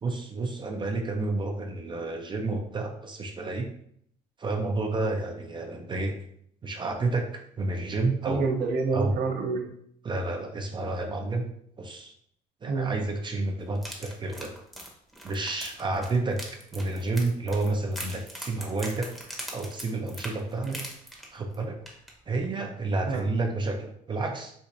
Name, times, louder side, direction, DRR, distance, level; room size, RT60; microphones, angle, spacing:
voice 1, 0.0-3.7 4.4-6.1 6.6-7.3 7.6-8.5 8.9-9.1 10.0-11.5 11.8-12.1 12.6-14.5 15.2-16.4 16.7-19.1 19.5-20.8 21.3-21.8 22.3-24.5, right 2 dB, 25° right, 3 dB, 0.5 m, -30 dB
voice 2, 8.2-9.7 12.7-13.0 20.6-20.8 23.1-23.2, right 4 dB, 65° right, 3 dB, 0.7 m, -28 dB
sound 1, 13.7-21.5 21.9-22.1 22.4-22.5, equal, ahead, 0.8 m, -41 dB
4.3 x 2.5 x 2.6 m, 0.68 s
cardioid pair, 110°, 17 cm